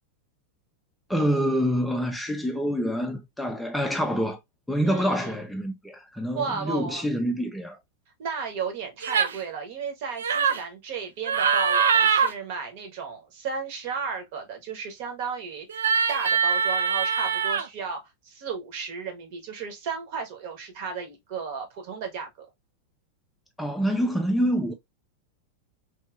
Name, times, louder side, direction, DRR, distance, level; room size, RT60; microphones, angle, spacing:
voice 1, 1.1-4.4 4.7-7.8 23.6-24.7, equal, 5° left, 0.5 m, -26 dB
voice 2, 4.8-5.4 6.3-7.1 8.2-22.5, right 5 dB, 50° right, 1.0 m, -34 dB
sound 1, 9.0-9.4 10.2-10.6 11.2-12.3 15.7-17.7, right 6 dB, 65° right, 0.3 m, -23 dB
3.0 x 2.6 x 2.4 m
figure-of-eight pair, 90°, 0 cm